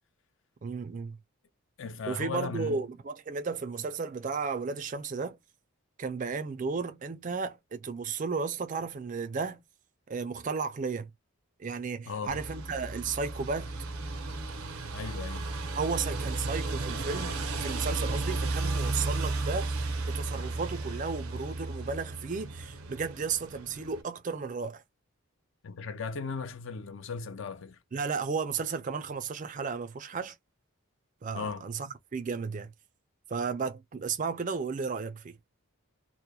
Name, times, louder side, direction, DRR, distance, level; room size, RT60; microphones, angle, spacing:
voice 1, 0.6-1.2 2.1-5.4 6.0-9.6 10.1-11.1 11.6-13.8 15.7-24.8 27.9-30.4 31.2-32.7 33.3-35.4, right 5 dB, 35° right, 0.4 m, -34 dB
voice 2, 1.8-2.8 12.1-12.4 14.9-15.5 25.6-27.8 31.3-31.6, left 5 dB, 55° left, 0.5 m, -37 dB
sound 1, 12.3-24.0, right 3 dB, 75° right, 0.6 m, -34 dB
2.8 x 2.1 x 2.2 m
head